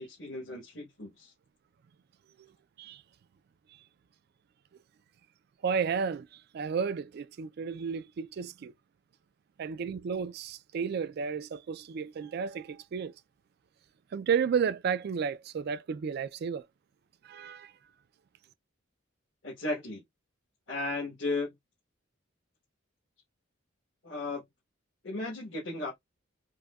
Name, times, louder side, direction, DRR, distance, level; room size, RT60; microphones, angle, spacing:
voice 1, 0.0-1.3 19.4-20.0 20.7-21.5 24.0-24.4 25.0-25.9, left 2 dB, 65° left, 1.3 m, -35 dB
voice 2, 5.6-8.7 9.6-13.1 14.1-16.7 17.2-17.7, right 6 dB, 55° right, 0.3 m, -32 dB
4.7 x 2.1 x 2.3 m
head